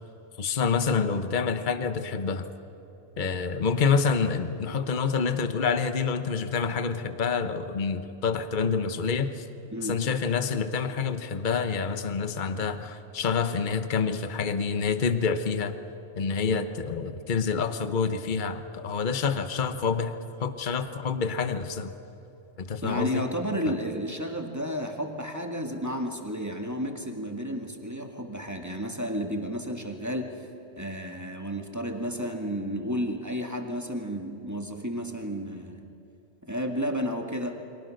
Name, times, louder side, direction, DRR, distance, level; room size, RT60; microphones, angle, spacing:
voice 1, 0.4-2.5 3.2-9.4 9.8-15.7 16.2-20.1 20.4-21.9 22.6-23.3 23.7-23.8, left 5 dB, 40° left, 9 dB, 1.2 m, -27 dB
sound 1, 4.5-5.5, left 1 dB, 90° right, 5.6 m, -50 dB
voice 2, 22.8-30.4 30.8-35.8 36.5-37.6, equal, 15° right, 3 dB, 2.1 m, -32 dB
29.5 x 24.0 x 6.5 m, 3.0 s
omnidirectional pair, 1.3 m